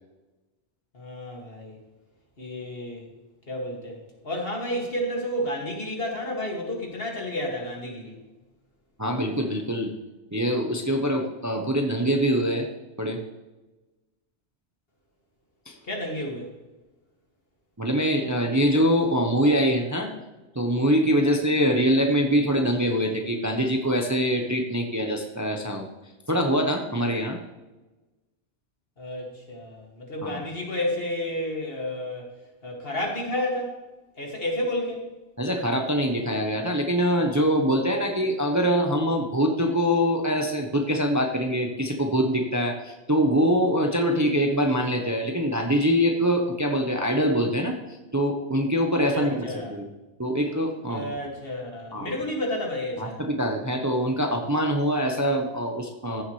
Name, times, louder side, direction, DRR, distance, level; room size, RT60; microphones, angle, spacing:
voice 1, 0.9-1.8 2.4-3.0 3.5-4.0 4.2-8.2 15.9-16.5 21.2-21.3 29.0-32.3 32.6-33.8 34.2-35.0 49.1-49.8 50.9-53.2, left 1 dB, 55° left, -1 dB, 2.4 m, -31 dB
voice 2, 9.0-9.9 10.3-12.7 13.0-13.2 15.7-15.8 17.8-20.1 20.5-25.9 26.3-27.4 30.2-30.4 35.4-47.7 48.1-49.9 50.2-51.1 51.9-52.2 53.0-56.2, equal, 15° right, 3 dB, 0.8 m, -24 dB
14.5 x 7.1 x 3.2 m, 1.1 s
omnidirectional pair, 1.2 m